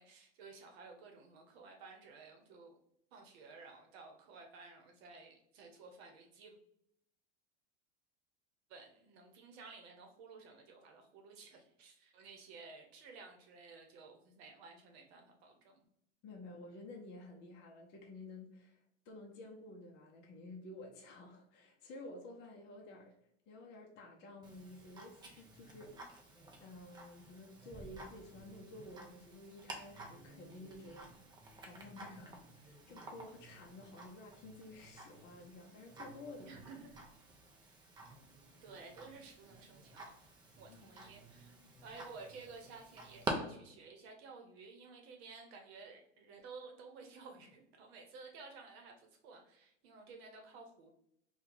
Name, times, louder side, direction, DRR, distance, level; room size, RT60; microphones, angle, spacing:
voice 1, 0.0-2.8 3.1-6.6 8.7-15.8 36.4-37.0 38.6-40.2 40.6-41.5 41.8-50.9, right 4 dB, 55° right, 3 dB, 0.9 m, -54 dB
voice 2, 16.2-18.8 19.1-23.1 23.5-25.9 26.6-36.6 40.7-41.0 41.6-41.7, left 2 dB, 30° left, 0 dB, 0.6 m, -52 dB
Tick-tock, 24.4-43.3, right 3 dB, 10° right, 0.4 m, -50 dB
2.8 x 2.3 x 3.7 m, 0.75 s
hypercardioid pair, 125°, 37 cm